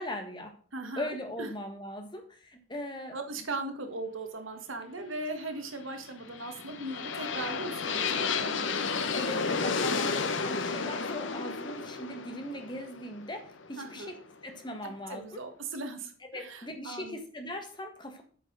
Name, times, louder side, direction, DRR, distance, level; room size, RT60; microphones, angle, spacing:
voice 1, 0.0-0.5 1.0-3.2 9.1-14.2 14.4-15.4 16.3-18.2, left 1 dB, 25° left, 5 dB, 1.6 m, -39 dB
voice 2, 0.7-1.5 3.1-8.6 13.8-14.1 14.8-17.2, right 2 dB, 85° right, 6 dB, 1.6 m, -39 dB
sound 1, 6.2-14.2, left 5 dB, 70° left, 1.0 m, -32 dB
8.2 x 5.3 x 6.3 m, 0.44 s
head